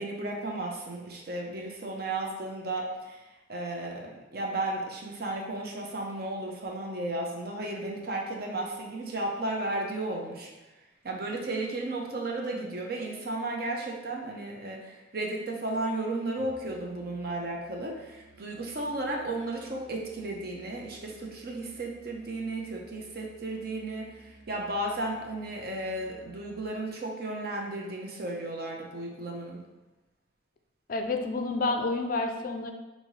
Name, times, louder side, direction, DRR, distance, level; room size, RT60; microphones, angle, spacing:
voice 1, 0.0-3.2 3.5-10.5 11.0-29.6, right 2 dB, 50° right, 0 dB, 0.7 m, -34 dB
Musical instrument, 16.4-26.7, right 2 dB, 90° right, 1.0 m, -56 dB
voice 2, 30.9-32.7, left 3 dB, 45° left, 5 dB, 0.3 m, -29 dB
5.2 x 2.7 x 3.1 m, 1.1 s
head